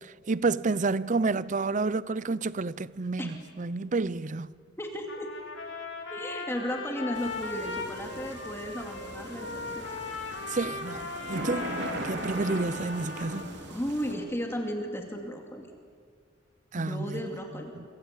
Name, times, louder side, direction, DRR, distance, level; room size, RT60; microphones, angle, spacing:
voice 1, 0.0-4.5 10.5-11.7 12.0-13.5 16.7-17.3 17.8-17.9, right 3 dB, 40° right, 0.6 m, -30 dB
voice 2, 4.8-5.3 6.1-10.0 13.7-15.7 16.7-17.7, equal, 15° left, 2.4 m, -35 dB
Trumpet, 5.1-13.5, left 4 dB, 80° left, 4.0 m, -38 dB
sound 1, 7.1-14.1, right 1 dB, 60° right, 4.1 m, -39 dB
26.5 x 25.5 x 8.3 m
head